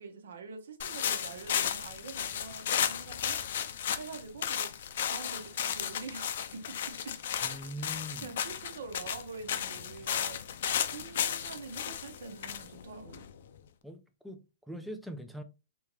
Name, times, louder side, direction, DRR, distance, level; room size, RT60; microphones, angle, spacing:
voice 1, 0.0-4.7 5.0-7.2 7.5-7.6 8.2-10.4 10.8-13.3, right 4 dB, 80° right, 1.0 m, -45 dB
sound 1, 0.8-13.6, left 9 dB, 60° left, 0.4 m, -34 dB
voice 2, 7.4-8.3 13.8-14.4 14.7-15.4, equal, ahead, 0.4 m, -41 dB
3.5 x 2.8 x 3.0 m
hypercardioid pair, 155°, 0 cm